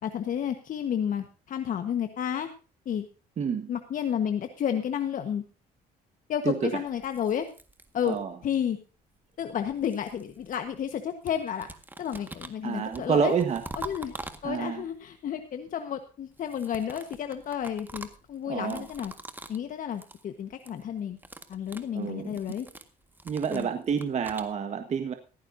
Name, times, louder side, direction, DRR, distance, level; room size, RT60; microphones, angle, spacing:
voice 1, 0.0-2.5 2.8-3.1 3.7-5.4 6.3-7.5 7.9-8.2 8.4-8.8 9.4-11.7 12.0-13.3 13.7-14.1 14.4-19.1 19.5-21.2 21.5-22.7 23.5-23.7, left 9 dB, 50° left, 7 dB, 1.4 m, -31 dB
voice 2, 3.4-3.7 6.4-6.8 8.0-8.4 12.6-13.6 14.4-14.8 18.4-18.9 21.9-22.4 23.2-25.1, right 7 dB, 40° right, 6 dB, 1.5 m, -28 dB
sound 1, 6.9-8.4 9.4-11.0 11.3-14.9 16.3-19.7 19.9-20.2 20.5-20.8 21.1-24.5, right 2 dB, 10° right, 1.7 m, -45 dB
16.5 x 14.5 x 2.7 m, 0.34 s
cardioid pair, 110°, 17 cm